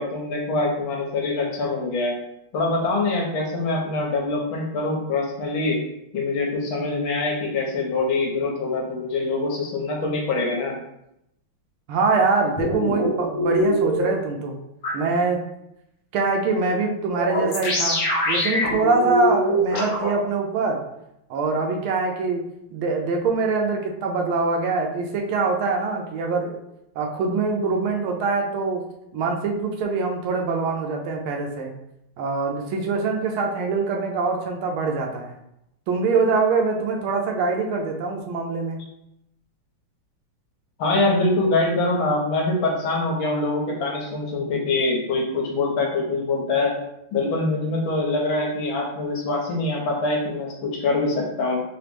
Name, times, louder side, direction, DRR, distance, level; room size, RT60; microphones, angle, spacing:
voice 1, 0.0-2.2 2.5-5.8 6.1-10.8 40.8-46.7 47.1-51.6, left 2 dB, 75° left, -1 dB, 1.6 m, -24 dB
voice 2, 11.9-14.6 14.9-15.4 16.1-18.0 18.3-20.8 21.3-22.4 22.7-26.6 27.0-28.9 29.1-31.7 32.2-35.3 35.9-38.8, right 4 dB, 80° right, 2 dB, 1.5 m, -24 dB
sound 1, 12.6-14.0 14.8-14.9 17.2-20.1, equal, 55° left, 1.1 m, -23 dB
3.8 x 2.9 x 3.3 m, 0.83 s
omnidirectional pair, 2.3 m